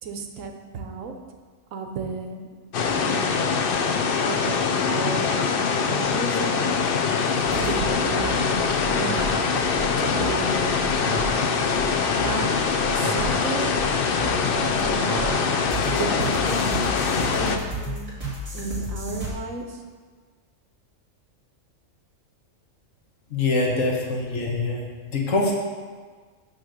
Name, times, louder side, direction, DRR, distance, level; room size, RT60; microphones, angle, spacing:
voice 1, 0.0-1.1 1.7-2.5 2.9-3.5 4.3-5.3 5.8-6.8 7.6-9.3 10.0-10.9 12.2-12.6 12.9-13.7 14.4-15.5 15.9-16.8 17.3-18.1 18.5-19.8, right 4 dB, 85° right, 5 dB, 1.2 m, -33 dB
sound 1, 2.7-17.6, left 5 dB, 60° left, 0.6 m, -23 dB
sound 2, 7.4-19.3, right 1 dB, 25° right, 2.1 m, -32 dB
voice 2, 23.3-25.5, left 3 dB, 80° left, -1 dB, 1.5 m, -24 dB
8.8 x 3.1 x 6.5 m, 1.5 s
omnidirectional pair, 1.3 m